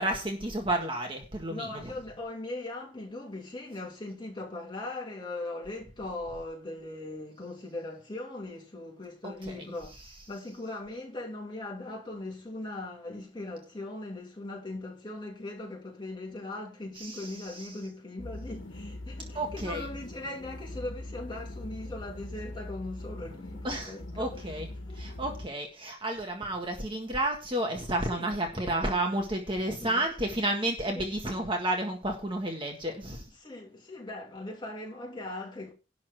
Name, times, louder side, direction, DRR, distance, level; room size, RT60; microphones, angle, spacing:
voice 1, 0.0-1.9 9.2-9.7 17.0-17.7 19.3-19.9 23.6-24.7 25.0-33.3, right 1 dB, 25° right, 1.7 m, -31 dB
voice 2, 1.5-9.9 10.3-24.6 24.9-25.3 28.1-28.3 29.8-30.1 30.9-31.0 33.3-35.7, left 2 dB, 25° left, 2.9 m, -40 dB
sound 1, 18.2-25.5, left 1 dB, 80° left, 1.6 m, -41 dB
11.5 x 4.2 x 7.8 m
head